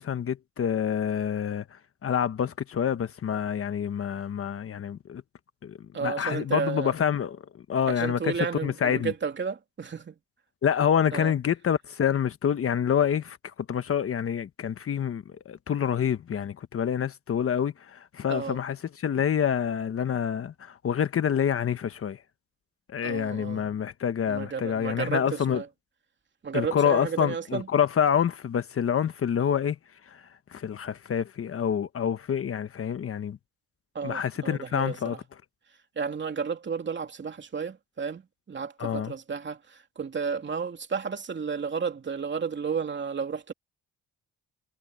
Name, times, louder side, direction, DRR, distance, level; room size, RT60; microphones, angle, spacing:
voice 1, 0.0-5.2 5.6-7.4 7.7-8.3 8.6-9.1 10.6-13.4 13.7-22.2 22.9-25.6 26.5-29.8 30.1-30.2 30.5-33.4 34.0-35.2 38.8-39.1, left 8 dB, 50° left, 1.2 m, -27 dB
voice 2, 5.9-6.9 7.9-10.1 11.1-11.3 18.3-18.6 23.0-23.6 24.3-25.7 26.4-27.7 33.9-35.2 36.0-38.2 38.5-43.5, right 6 dB, 40° right, 2.9 m, -32 dB
cardioid pair, 90°, 30 cm